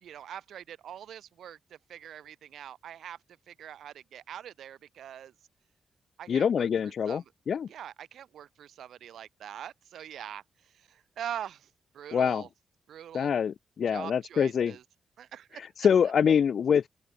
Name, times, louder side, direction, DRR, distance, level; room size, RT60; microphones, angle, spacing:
voice 1, 0.0-3.2 3.5-5.3 6.2-7.2 7.7-12.5 12.9-13.3 13.8-14.8 15.2-15.9, right 10 dB, 85° right, 3.0 m, -43 dB
voice 2, 6.3-7.7 12.1-12.4 13.1-14.7 15.8-16.9, left 7 dB, 60° left, 0.8 m, -25 dB
open air
wide cardioid pair, 125°, 0 cm